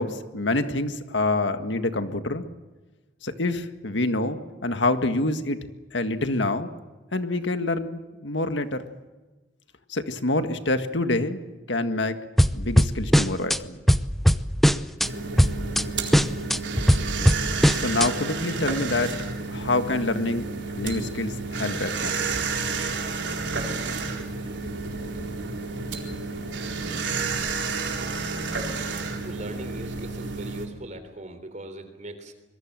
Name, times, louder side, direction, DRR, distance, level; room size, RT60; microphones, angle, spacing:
voice 1, 0.0-2.5 3.2-5.6 5.9-6.7 7.1-8.9 9.9-11.4 11.7-12.2 12.5-13.8 17.7-19.1 19.5-22.2, left 2 dB, 90° left, 8 dB, 1.8 m, -26 dB
sound 1, 12.4-13.6 13.9-15.1 15.4-15.8 16.1-18.1, equal, ahead, 0.7 m, -19 dB
sound 2, 15.0-30.7, right 4 dB, 75° right, 4.2 m, -30 dB
voice 2, 26.8-27.3 28.9-32.3, right 1 dB, 45° right, 9 dB, 3.6 m, -40 dB
25.5 x 22.5 x 7.6 m, 1.2 s
head